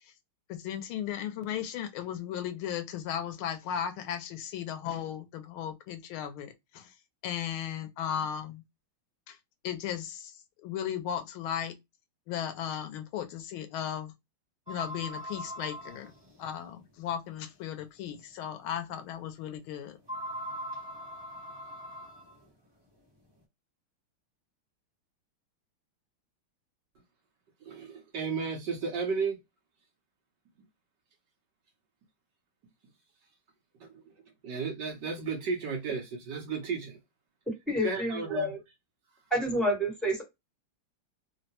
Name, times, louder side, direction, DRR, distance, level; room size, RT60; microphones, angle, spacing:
voice 1, 0.5-6.9 7.2-8.6 9.3-9.4 9.6-10.3 10.6-11.7 12.3-14.1 14.7-16.1 16.4-20.0, left 9 dB, 80° left, 1.5 m, -36 dB
sound 1, 14.7-16.7 17.4-17.5 18.0-18.1 20.0-22.5, equal, 25° right, 0.5 m, -41 dB
voice 2, 27.7-29.4 33.8-33.9 34.4-37.0 37.8-38.5, right 5 dB, 65° right, 1.3 m, -33 dB
voice 3, 37.7-38.6 39.3-40.2, equal, ahead, 0.9 m, -28 dB
3.7 x 2.1 x 2.8 m
omnidirectional pair, 2.3 m